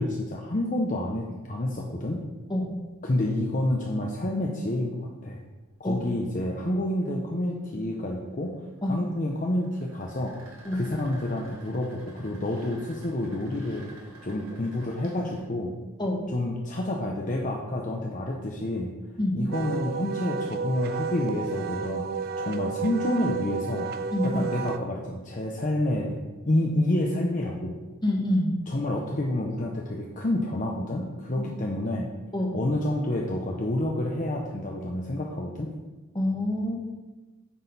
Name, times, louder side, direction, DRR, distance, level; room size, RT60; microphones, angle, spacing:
voice 1, 0.0-2.2 3.0-5.4 5.8-13.9 14.2-15.7 16.3-18.9 19.3-22.1 22.4-23.9 24.2-27.8 28.7-32.1 32.5-35.7, left 1 dB, 35° left, 0 dB, 0.7 m, -29 dB
voice 2, 2.5-2.8 5.8-6.0 8.8-9.0 10.6-10.8 16.0-16.3 19.2-19.4 24.1-24.4 28.0-28.6 31.4-31.5 32.3-32.6 36.1-36.7, left 1 dB, 20° left, 1 dB, 1.2 m, -27 dB
sound 1, 5.6-15.4, right 1 dB, 85° right, 1.9 m, -52 dB
Wind instrument woodwind instrument, 19.5-24.8, right 5 dB, 45° right, 0.3 m, -32 dB
9.4 x 6.3 x 4.1 m, 1.2 s
head